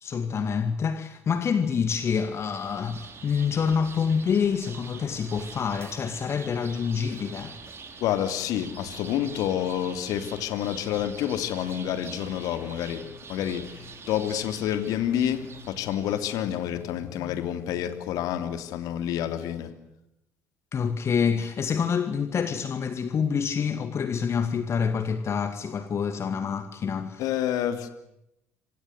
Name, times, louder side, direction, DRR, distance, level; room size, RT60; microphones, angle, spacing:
voice 1, 0.0-7.6 20.7-27.3, left 6 dB, 40° left, 2.2 m, -27 dB
sound 1, 1.6-16.7, right 5 dB, 35° right, 5.0 m, -45 dB
voice 2, 8.0-19.7 27.2-27.9, left 10 dB, 55° left, 3.0 m, -28 dB
27.5 x 26.5 x 8.1 m
figure-of-eight pair, 55°, 7 cm